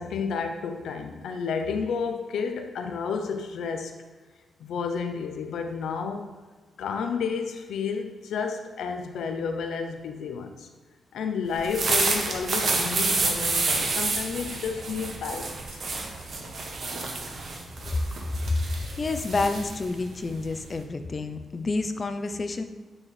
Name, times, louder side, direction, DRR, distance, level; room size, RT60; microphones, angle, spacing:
voice 1, 0.0-4.0 4.6-6.3 6.8-10.7 11.1-15.9, left 5 dB, 90° left, 5 dB, 0.5 m, -31 dB
sound 1, 11.5-20.8, right 3 dB, 50° right, 0.9 m, -29 dB
voice 2, 18.4-22.6, left 3 dB, 35° left, 9 dB, 0.5 m, -29 dB
8.7 x 4.4 x 3.2 m, 1.4 s
cardioid pair, 115°, 0 cm